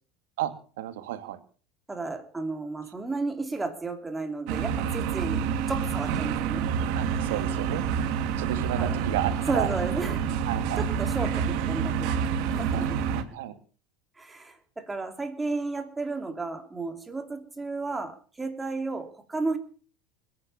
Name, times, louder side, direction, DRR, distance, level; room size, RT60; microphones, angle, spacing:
voice 1, 0.4-1.4 6.9-7.8 8.4-9.7 10.4-10.9 12.7-13.5, right 13 dB, 90° right, 9 dB, 2.3 m, -32 dB
voice 2, 1.9-5.4 5.7-6.7 8.8-9.0 9.5-10.3 10.8-12.1 12.4-13.1 14.2-19.6, right 3 dB, 10° right, 6 dB, 2.9 m, -33 dB
sound 1, 4.5-13.2, right 7 dB, 60° right, 2.4 m, -28 dB
21.0 x 9.6 x 7.1 m, 0.42 s
supercardioid pair, 140°, 0 cm